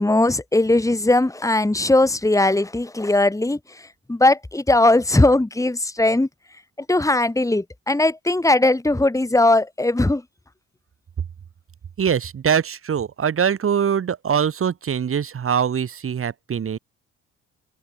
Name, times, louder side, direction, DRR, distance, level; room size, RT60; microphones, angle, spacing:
voice 1, 0.0-6.3 6.9-10.2, left 2 dB, 10° left, 3.4 m, -19 dB
voice 2, 12.0-16.8, right 7 dB, 45° right, 2.1 m, -23 dB
open air
cardioid pair, 90°, 30 cm